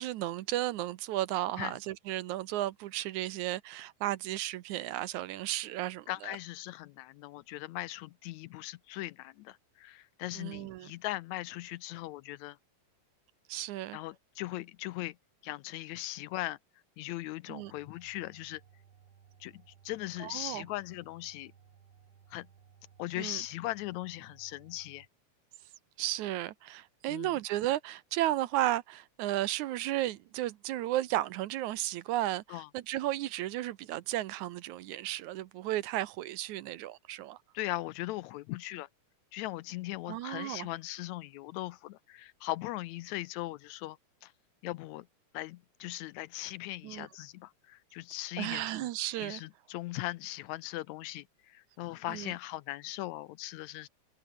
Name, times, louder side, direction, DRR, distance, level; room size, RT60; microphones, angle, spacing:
voice 1, 0.0-6.4 10.4-10.9 13.5-14.0 17.5-17.7 20.2-20.6 23.2-23.4 26.0-37.4 40.1-40.7 46.8-47.1 48.4-49.4 52.1-52.3, right 15 dB, 80° right, 2.2 m, -34 dB
voice 2, 6.1-12.6 13.9-15.2 15.4-16.6 17.0-18.6 19.4-21.5 22.3-22.5 23.0-25.1 27.1-27.3 32.5-32.7 37.5-38.9 39.3-44.3 44.6-45.1 45.3-48.9 49.2-53.9, left 17 dB, 80° left, 1.8 m, -39 dB
sound 1, 17.6-25.1, right 8 dB, 50° right, 2.7 m, -60 dB
omnidirectional pair, 3.5 m